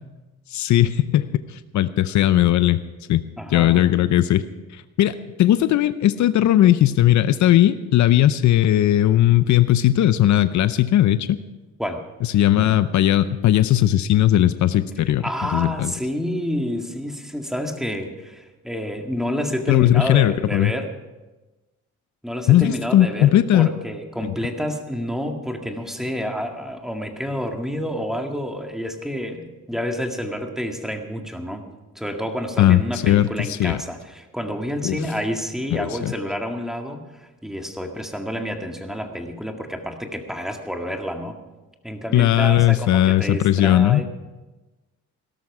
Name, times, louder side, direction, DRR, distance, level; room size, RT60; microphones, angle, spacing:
voice 1, 0.5-2.8 3.1-3.2 3.5-4.5 4.7-11.4 12.2-15.2 15.5-15.9 19.7-20.7 22.5-23.7 24.2-24.3 32.6-33.8 34.8-35.0 35.7-36.1 42.1-44.0, left 13 dB, 70° left, 13 dB, 0.7 m, -18 dB
voice 2, 3.4-3.9 11.8-12.1 15.1-20.9 22.2-31.6 32.0-41.3 41.8-44.1, equal, ahead, 3 dB, 2.0 m, -29 dB
17.5 x 12.5 x 4.9 m, 1.1 s
cardioid pair, 90°, 30 cm